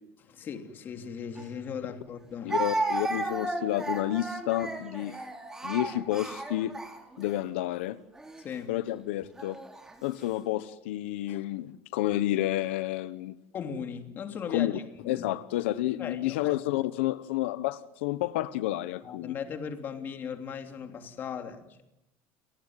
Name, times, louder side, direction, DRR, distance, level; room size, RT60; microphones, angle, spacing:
voice 1, 0.2-2.6 5.1-5.2 8.4-8.8 11.3-11.4 13.5-15.2 16.0-16.6 19.0-21.8, left 7 dB, 30° left, 3.1 m, -38 dB
Speech, 1.4-1.5 2.5-7.4 8.2-8.4 9.4-9.9, right 2 dB, 10° right, 3.2 m, -34 dB
voice 2, 2.4-5.1 5.6-6.8 7.2-8.0 8.7-9.6 10.0-13.4 14.5-14.7 15.1-19.3, left 15 dB, 90° left, 1.2 m, -30 dB
30.0 x 17.5 x 9.5 m
cardioid pair, 145°, 6 cm